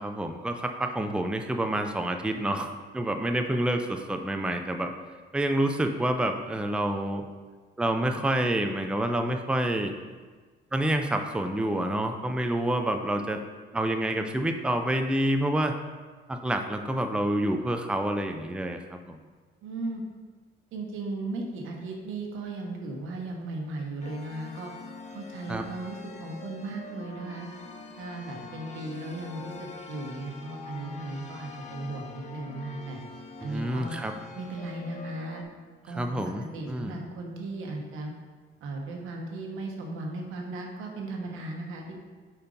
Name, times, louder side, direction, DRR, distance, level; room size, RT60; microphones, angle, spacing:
voice 1, 0.0-4.9 5.3-7.2 7.8-9.9 10.7-13.4 13.7-15.7 16.3-19.2 25.5-25.6 33.4-34.1 35.9-37.0, right 1 dB, 5° right, 5 dB, 0.5 m, -28 dB
voice 2, 19.6-20.0 20.7-24.7 25.1-27.5 28.0-33.0 33.4-33.9 34.3-35.4 35.8-36.2 36.5-38.1 38.6-41.9, right 2 dB, 90° right, 1 dB, 1.1 m, -36 dB
sound 1, 24.0-35.4, left 4 dB, 35° left, 0.8 m, -44 dB
4.9 x 4.5 x 5.3 m, 1.4 s
cardioid pair, 90°, 20 cm